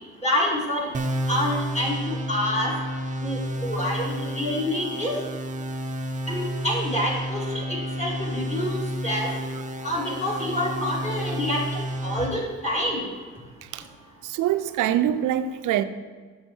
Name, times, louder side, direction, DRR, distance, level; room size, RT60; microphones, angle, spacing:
voice 1, 0.2-0.9 1.3-2.7 3.2-5.2 6.3-9.3 9.8-13.0, left 1 dB, 20° left, 2.9 m, -27 dB
sound 1, 0.9-12.3, equal, 25° right, 0.7 m, -31 dB
voice 2, 14.2-15.8, right 11 dB, 85° right, 0.6 m, -24 dB
10.0 x 7.2 x 4.5 m
cardioid pair, 90°, 30 cm